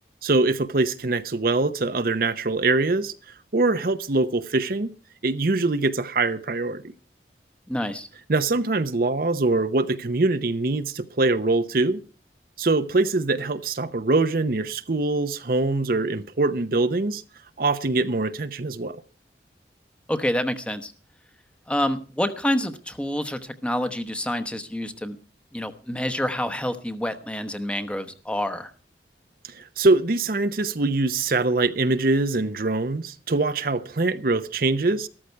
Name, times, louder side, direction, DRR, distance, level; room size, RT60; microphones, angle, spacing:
voice 1, 0.2-3.1 3.5-4.9 5.2-6.8 8.3-12.0 12.6-17.2 17.6-19.0 29.5-35.1, right 3 dB, 55° right, 0.7 m, -23 dB
voice 2, 7.7-8.1 20.1-20.9 21.7-25.2 25.5-28.7, left 1 dB, 5° left, 1.0 m, -27 dB
13.5 x 13.0 x 4.5 m
head